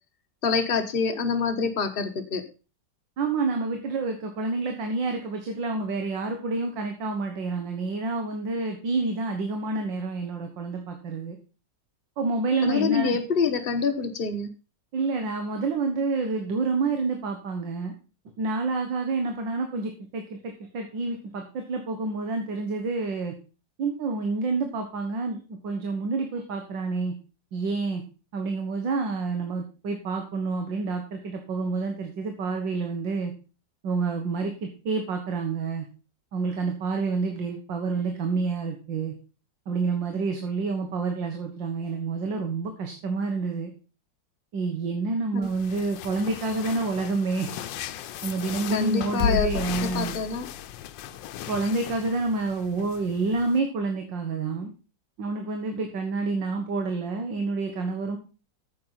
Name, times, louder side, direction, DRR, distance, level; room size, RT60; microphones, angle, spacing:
voice 1, 0.4-2.4 12.6-14.5 45.3-45.5 48.7-49.5 49.8-50.5, left 5 dB, 35° left, 5 dB, 1.2 m, -26 dB
voice 2, 3.2-11.4 12.2-13.2 14.9-17.9 18.4-23.3 23.8-27.1 27.5-28.0 28.3-33.3 33.8-35.9 36.3-39.1 39.7-43.7 44.5-47.5 48.2-50.1 51.5-54.7 55.2-58.2, right 3 dB, 85° right, 4 dB, 2.1 m, -28 dB
sound 1, 45.4-53.6, left 7 dB, 90° left, 1.4 m, -35 dB
9.0 x 7.7 x 5.5 m, 0.34 s
omnidirectional pair, 1.9 m